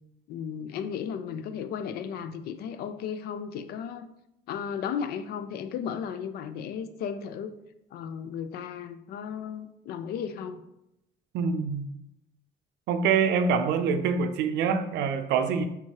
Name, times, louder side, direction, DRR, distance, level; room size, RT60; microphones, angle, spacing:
voice 1, 0.3-4.1 4.5-7.5 7.9-10.6, left 7 dB, 65° left, 0.4 m, -35 dB
voice 2, 11.3-11.9 12.9-15.7, right 6 dB, 90° right, 0.5 m, -25 dB
3.6 x 2.9 x 4.5 m
cardioid pair, 165°, 17 cm